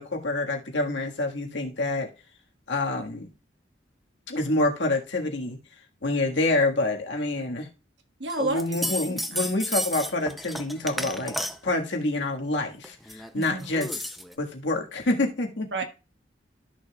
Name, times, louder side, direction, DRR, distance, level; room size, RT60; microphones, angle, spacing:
voice 1, 0.0-2.1 2.7-3.3 4.3-5.6 6.0-7.7 8.4-11.3 11.6-14.0 14.4-15.7, left 2 dB, 90° left, 1.6 m, -27 dB
voice 2, 8.2-9.4 13.3-13.7 15.7-15.8, right 2 dB, 75° right, 1.5 m, -31 dB
sound 1, 8.3-11.8 12.8-14.3, equal, ahead, 0.5 m, -33 dB
13.5 x 6.3 x 2.3 m
head